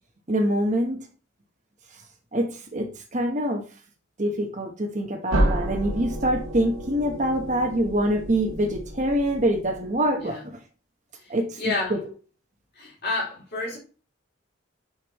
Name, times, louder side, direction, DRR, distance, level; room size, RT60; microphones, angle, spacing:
voice 1, 0.3-1.0 2.3-3.6 4.2-10.4 11.3-11.5, right 1 dB, 35° right, 1.1 m, -25 dB
sound 1, 5.3-10.1, right 1 dB, 80° right, 1.8 m, -30 dB
voice 2, 10.2-10.5 11.2-12.0 12.7-13.8, left 3 dB, 50° left, 2.9 m, -30 dB
6.3 x 5.3 x 3.1 m
head